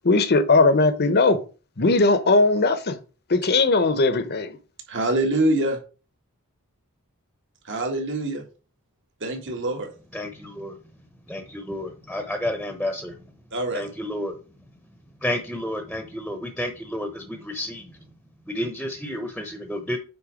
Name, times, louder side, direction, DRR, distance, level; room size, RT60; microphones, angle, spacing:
voice 1, 0.1-1.4 1.8-3.0 3.3-4.5, left 3 dB, 45° left, 0.9 m, -19 dB
voice 2, 4.9-5.8 7.7-8.4 9.2-9.9 13.5-13.8, right 1 dB, 55° right, 1.8 m, -24 dB
voice 3, 10.1-10.7 11.3-13.1 13.7-14.3 15.2-17.8 18.5-20.0, left 1 dB, ahead, 1.0 m, -30 dB
9.1 x 3.9 x 5.1 m
head